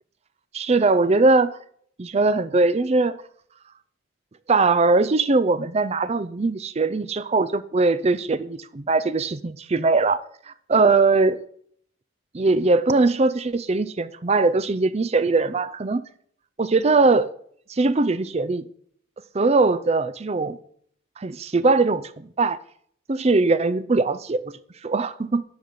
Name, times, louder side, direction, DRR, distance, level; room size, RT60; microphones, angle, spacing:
voice 1, 0.5-1.6 2.0-3.2 4.5-10.2 10.7-11.4 12.3-16.0 16.6-17.3 17.7-18.6 19.3-20.6 21.2-22.6 23.1-24.5 24.8-25.4, right 3 dB, 30° right, 0.5 m, -21 dB
10.5 x 5.7 x 6.5 m
head